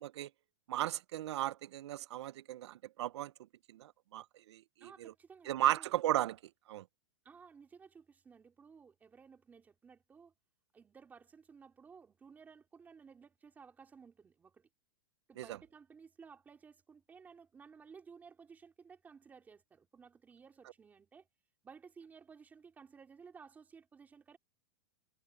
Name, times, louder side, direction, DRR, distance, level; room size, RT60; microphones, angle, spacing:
voice 1, 0.7-3.3 3.7-5.1 5.5-6.4 6.7-6.8 15.4-15.6, right 14 dB, 80° right, 0.5 m, -35 dB
voice 2, 4.8-5.9 7.2-10.3 10.7-14.7 15.3-21.3 21.6-24.4, right 5 dB, 10° right, 4.0 m, -57 dB
supercardioid pair, 170°, 14 cm